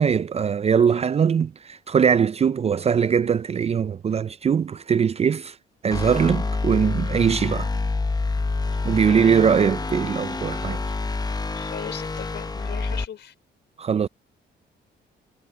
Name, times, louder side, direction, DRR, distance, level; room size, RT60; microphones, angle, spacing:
voice 1, 0.0-5.5 5.8-7.7 8.8-10.8 13.8-14.1, right 7 dB, 30° right, 0.4 m, -21 dB
sound 1, 5.9-13.1, left 3 dB, 20° left, 1.0 m, -27 dB
voice 2, 9.1-9.5 11.5-13.3, left 9 dB, 60° left, 4.2 m, -38 dB
cardioid pair, 90°, 20 cm